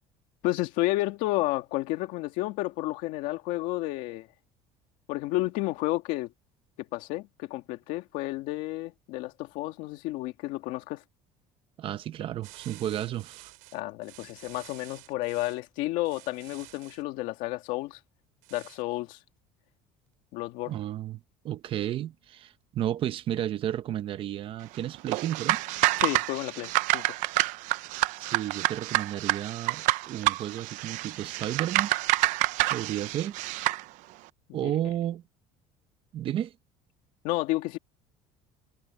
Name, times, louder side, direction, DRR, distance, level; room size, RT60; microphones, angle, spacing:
voice 1, 0.4-4.3 5.1-6.3 6.9-11.0 13.7-18.0 18.5-19.2 20.3-20.7 26.0-27.2 34.6-34.7 37.2-37.8, left 18 dB, 75° left, 2.0 m, -31 dB
voice 2, 11.8-13.5 20.7-25.6 28.2-31.9 32.7-33.4 34.5-35.2 36.1-36.5, right 11 dB, 40° right, 0.8 m, -32 dB
sound 1, 12.4-15.6 16.0-17.0 18.4-18.8, right 23 dB, 85° right, 3.7 m, -50 dB
sound 2, 25.1-33.8, right 19 dB, 70° right, 0.6 m, -28 dB
cardioid pair, 155°, 14 cm